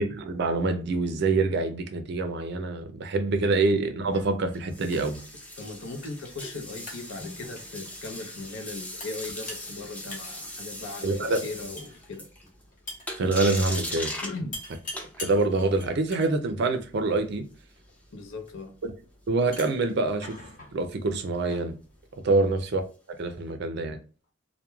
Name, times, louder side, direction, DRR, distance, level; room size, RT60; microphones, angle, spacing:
voice 1, 0.0-5.2 11.0-11.4 13.2-14.1 15.2-17.5 19.3-20.4 20.7-21.7 22.2-22.8 23.2-24.0, right 3 dB, 55° right, 0.4 m, -25 dB
sound 1, 4.0-22.9, left 2 dB, 40° left, 0.7 m, -47 dB
sound 2, 4.5-12.6 13.1-14.4 14.9-15.4 19.5-19.9 23.5-23.6, left 1 dB, 5° left, 0.4 m, -39 dB
voice 2, 5.6-12.3 14.2-14.6 15.0-15.1 18.1-18.7 22.3-22.5, left 3 dB, 75° left, 0.6 m, -38 dB
2.3 x 2.1 x 3.0 m
head